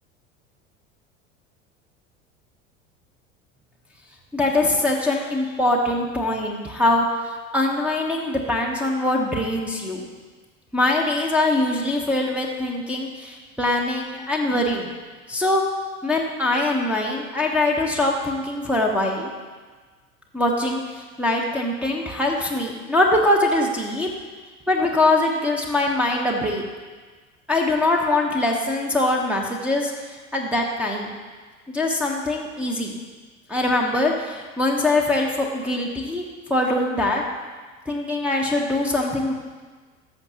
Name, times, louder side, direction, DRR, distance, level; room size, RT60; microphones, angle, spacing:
voice 1, 4.3-7.1 7.5-10.1 10.7-14.9 15.3-15.6 16.0-19.3 20.3-24.1 24.7-26.6 27.5-29.9 30.3-31.1 31.7-33.0 33.5-36.2 36.5-37.2 37.9-39.3, left 2 dB, 5° right, -3 dB, 1.1 m, -22 dB
13.5 x 6.7 x 2.9 m, 1.4 s
figure-of-eight pair, 75°, 39 cm